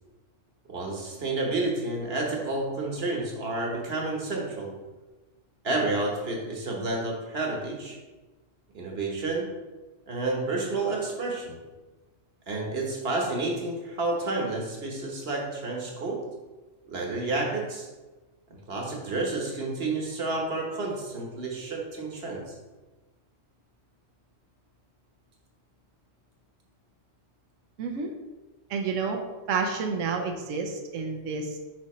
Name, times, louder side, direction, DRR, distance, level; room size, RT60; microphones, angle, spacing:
voice 1, 0.7-4.8 5.6-8.0 8.7-9.5 10.1-11.6 12.5-16.2 16.9-17.9 18.7-22.4, right 2 dB, 55° right, 0 dB, 1.3 m, -30 dB
voice 2, 27.8-28.1 28.7-29.2 29.5-31.6, right 5 dB, 80° right, 3 dB, 1.1 m, -29 dB
6.4 x 5.2 x 3.1 m, 1.2 s
omnidirectional pair, 1.3 m